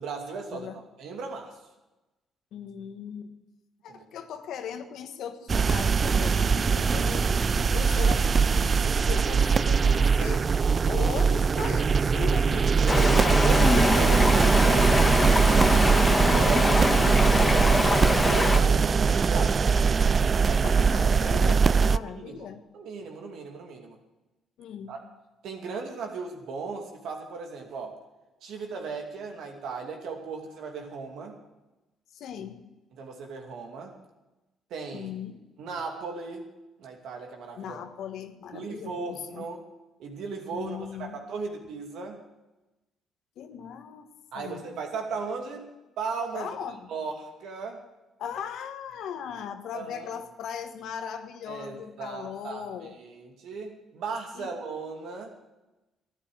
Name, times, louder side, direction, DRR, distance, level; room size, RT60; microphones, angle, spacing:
voice 1, 0.0-0.7 1.0-1.6 3.9-4.0 6.9-7.1 7.4-7.7 12.8-15.3 16.2-19.7 20.4-20.8 21.9-22.5 22.7-24.0 24.9-25.0 25.4-28.0 28.4-31.4 33.0-34.0 34.7-35.1 35.6-36.4 36.8-37.8 38.5-39.6 40.0-42.2 44.3-45.7 46.0-46.5 46.9-47.8 49.7-50.1 51.5-55.3, right 4 dB, 70° right, 2 dB, 2.6 m, -36 dB
voice 2, 2.5-3.3 3.8-10.5 10.9-14.4 15.9-16.3 20.6-22.6 24.6-25.0 32.1-32.6 34.9-35.4 37.6-39.4 40.5-41.2 43.4-44.1 44.3-44.7 46.3-46.9 48.2-53.0 54.3-54.5, left 8 dB, 70° left, 7 dB, 1.5 m, -38 dB
sound 1, 5.5-22.0, right 5 dB, 45° right, 0.4 m, -22 dB
Stream, 12.9-18.6, left 2 dB, 25° left, 1.7 m, -24 dB
13.5 x 9.9 x 7.9 m, 1.0 s
hypercardioid pair, 55°, 0 cm